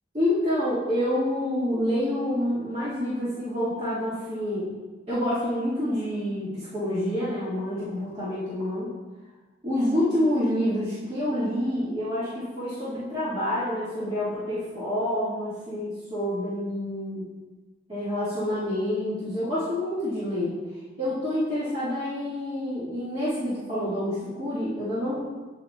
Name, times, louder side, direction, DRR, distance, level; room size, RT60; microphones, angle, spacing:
voice 1, 0.1-4.7 5.1-8.9 9.6-17.3 17.9-20.5 21.0-25.2, left 1 dB, 35° right, -12 dB, 2.0 m, -27 dB
8.8 x 7.1 x 2.4 m, 1.2 s
head